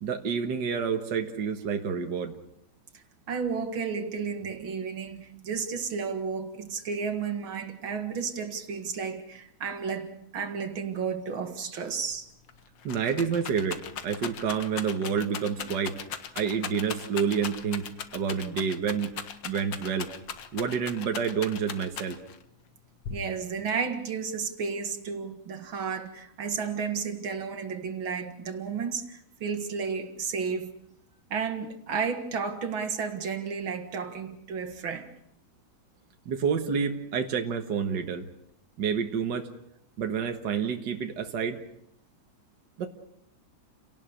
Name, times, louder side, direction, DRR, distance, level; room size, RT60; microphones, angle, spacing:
voice 1, 0.0-2.4 12.8-13.8 14.0-16.0 16.4-17.8 18.1-19.1 19.4-20.1 20.5-22.2 36.3-38.2 38.8-39.5 40.0-41.6 42.8-42.9, right 6 dB, 60° right, 2.0 m, -28 dB
voice 2, 3.3-12.3 23.1-30.7 31.3-35.1, right 6 dB, 80° right, 2.6 m, -32 dB
Rattle, 12.1-12.2 12.5-22.4 23.0-23.7, left 7 dB, 70° left, 1.9 m, -38 dB
29.5 x 18.0 x 6.5 m
omnidirectional pair, 2.2 m